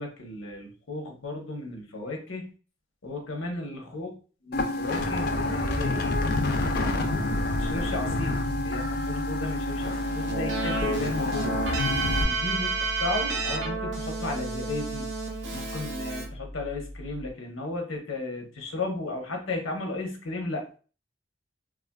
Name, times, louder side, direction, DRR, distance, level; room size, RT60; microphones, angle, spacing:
voice 1, 0.0-2.5 3.0-4.1 4.4-6.2 6.7-15.1 15.5-20.6, left 2 dB, 85° left, 2 dB, 0.8 m, -35 dB
sound 1, 4.5-12.2, left 2 dB, 50° left, 0.5 m, -28 dB
Piano, 5.1-17.3, equal, 5° right, 0.5 m, -37 dB
Keyboard (musical), 9.8-16.3, right 4 dB, 60° right, 0.6 m, -31 dB
3.4 x 2.4 x 2.2 m, 0.37 s
head